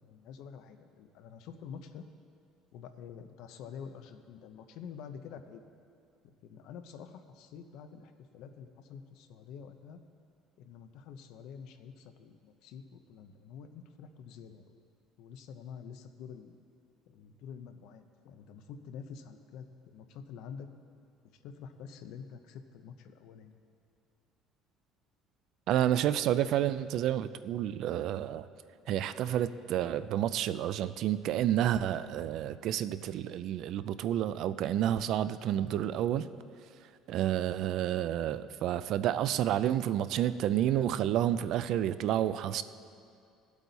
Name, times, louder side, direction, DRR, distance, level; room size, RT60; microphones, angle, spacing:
voice 1, 0.0-2.0 2.7-5.7 6.2-10.0 10.6-14.8 15.2-16.6 17.1-20.7 21.4-23.6, left 7 dB, 60° left, 8 dB, 0.8 m, -48 dB
voice 2, 25.7-28.5 28.9-36.3 37.1-42.6, right 11 dB, 50° right, 14 dB, 0.4 m, -30 dB
19.0 x 8.2 x 4.1 m, 2.4 s
cardioid pair, 175°, 0 cm